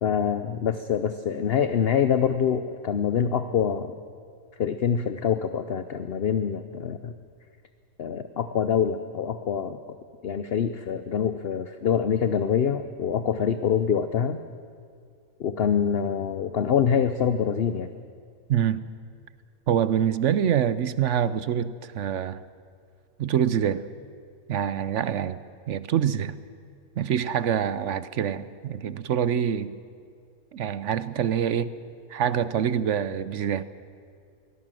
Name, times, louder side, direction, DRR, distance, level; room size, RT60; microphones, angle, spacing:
voice 1, 0.0-3.9 4.6-7.1 8.0-9.8 10.2-14.4 15.4-17.9, left 7 dB, 50° left, 0.8 m, -25 dB
voice 2, 18.5-18.8 19.7-22.4 23.2-23.8 24.5-26.4 27.0-29.7 30.5-31.7 32.1-33.6, right 9 dB, 60° right, 0.9 m, -25 dB
23.5 x 17.0 x 7.6 m
omnidirectional pair, 1.6 m